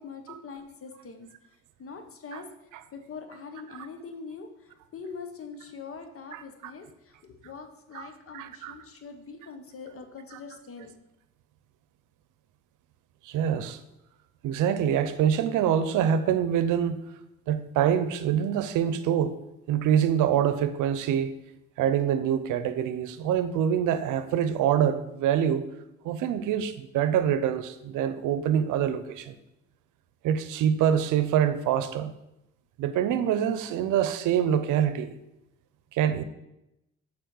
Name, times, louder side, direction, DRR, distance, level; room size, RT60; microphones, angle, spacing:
voice 1, 0.0-2.5 2.9-10.9, left 5 dB, 50° left, 1.1 m, -43 dB
voice 2, 7.9-8.7 10.3-10.4 13.3-13.8 14.4-17.0 17.5-19.4 19.7-21.3 21.8-25.6 26.0-29.4 30.2-32.1 32.8-35.1 35.9-36.2, right 9 dB, 90° right, 0.6 m, -25 dB
7.0 x 4.2 x 6.4 m
cardioid pair, 90°, 30 cm